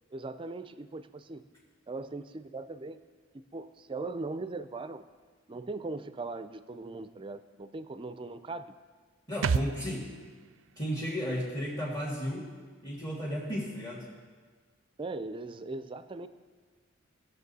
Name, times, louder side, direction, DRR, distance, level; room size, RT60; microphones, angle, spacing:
voice 1, 0.1-1.4 1.9-3.0 3.3-5.0 5.5-8.7 15.0-16.3, right 3 dB, 25° right, 12 dB, 0.4 m, -39 dB
voice 2, 9.3-10.1 10.8-12.5 12.8-14.0, equal, 20° left, -6 dB, 1.7 m, -34 dB
sound 1, 9.4-12.9 13.2-13.3, right 5 dB, 85° right, 0.4 m, -36 dB
17.5 x 6.8 x 4.1 m, 1.5 s
head